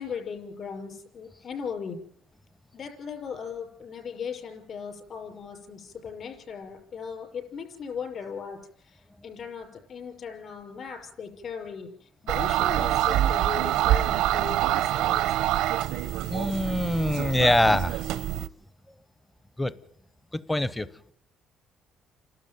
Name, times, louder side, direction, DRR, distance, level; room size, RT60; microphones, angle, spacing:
voice 1, 0.0-2.0 2.7-15.5, left 6 dB, 50° left, 4 dB, 6.0 m, -38 dB
sound 1, 12.3-18.5, right 13 dB, 85° right, 0.8 m, -25 dB
voice 2, 16.3-18.0 19.6-19.8 20.3-21.1, left 1 dB, 10° left, 16 dB, 0.8 m, -24 dB
30.0 x 12.5 x 9.3 m, 0.69 s
cardioid pair, 120°, 0 cm